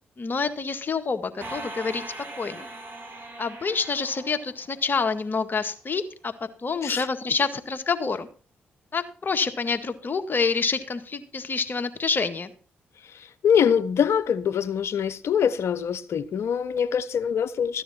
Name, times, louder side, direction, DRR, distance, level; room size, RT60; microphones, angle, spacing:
voice 1, 0.2-2.0 2.4-2.7 3.4-6.3 6.6-8.3 8.9-12.5, left 4 dB, 45° left, 1.8 m, -27 dB
sound 1, 1.4-5.1, right 2 dB, 50° right, 4.8 m, -40 dB
voice 2, 13.0-17.8, left 8 dB, 65° left, 0.9 m, -24 dB
14.0 x 9.9 x 4.3 m
hypercardioid pair, 40°, 5 cm